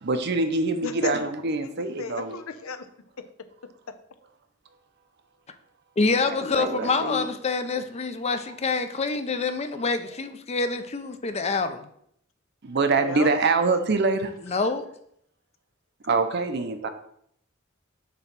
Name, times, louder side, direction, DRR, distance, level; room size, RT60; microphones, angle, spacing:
voice 1, 0.0-2.4 6.3-7.3 12.6-14.3 16.0-16.9, right 3 dB, 55° right, 7 dB, 0.7 m, -25 dB
voice 2, 2.0-2.8 13.0-13.3, left 4 dB, 85° left, 9 dB, 0.7 m, -33 dB
voice 3, 6.0-11.8 14.5-14.9, left 4 dB, 30° left, 9 dB, 0.5 m, -26 dB
6.8 x 3.1 x 5.9 m, 0.69 s
head